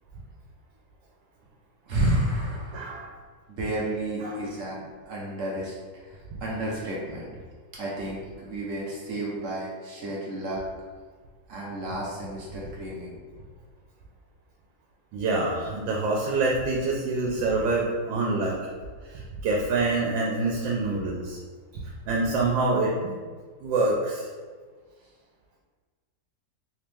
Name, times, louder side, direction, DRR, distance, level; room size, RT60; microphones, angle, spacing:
voice 1, 1.9-2.9 3.6-7.3 7.7-10.6 11.5-13.2, right 1 dB, 60° right, -5 dB, 0.8 m, -31 dB
voice 2, 2.7-3.1 4.2-4.4 6.3-6.4 15.1-18.6 19.1-21.4 22.1-22.9 23.6-24.3, right 3 dB, 85° right, -2 dB, 1.3 m, -26 dB
3.5 x 3.0 x 3.3 m, 1.5 s
omnidirectional pair, 2.0 m